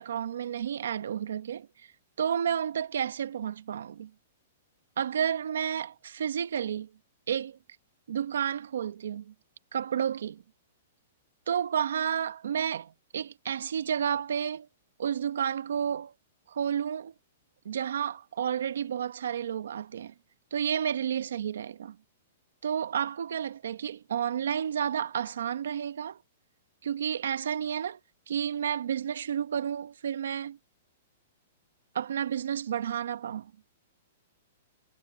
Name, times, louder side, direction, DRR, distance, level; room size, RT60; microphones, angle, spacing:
voice 1, 0.0-1.7 2.2-4.1 5.0-6.9 7.3-7.6 8.1-9.3 9.7-10.4 11.5-14.7 15.0-16.1 16.5-17.1 17.6-20.1 20.5-22.0 22.6-26.2 26.8-28.0 28.3-30.6 31.9-33.5, right 8 dB, 85° right, 1.1 m, -31 dB
hypercardioid pair, 170°, 0 cm